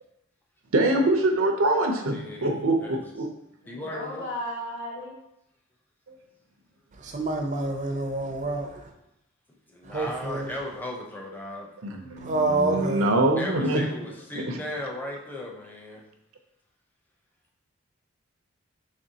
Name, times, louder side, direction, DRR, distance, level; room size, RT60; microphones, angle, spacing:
voice 1, 0.7-3.3 6.1-6.2 11.8-13.8 14.5-14.6, right 2 dB, 80° right, 0.6 m, -24 dB
voice 2, 2.1-3.0 3.7-4.3 9.7-11.7 13.3-16.0, left 1 dB, 10° left, 0.6 m, -36 dB
voice 3, 3.6-5.1, left 1 dB, 60° left, 1.4 m, -35 dB
voice 4, 7.0-8.8 9.9-10.5 12.2-13.1, right 2 dB, 35° right, 0.4 m, -27 dB
5.1 x 3.2 x 2.8 m
head